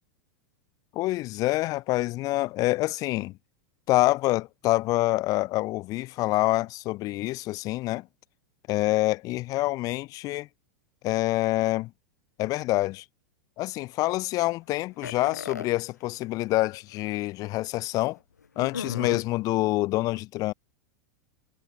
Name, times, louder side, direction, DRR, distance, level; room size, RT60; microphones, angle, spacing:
voice 1, 0.9-3.4 3.9-8.1 8.7-10.5 11.0-11.9 12.4-13.0 13.6-18.2 18.6-20.5, left 19 dB, 40° left, 2.5 m, -26 dB
sound 1, 15.0-15.7 16.6-16.7 17.0-17.1 18.6-19.2, left 6 dB, 85° left, 4.8 m, -34 dB
hypercardioid pair, 95°, 9 cm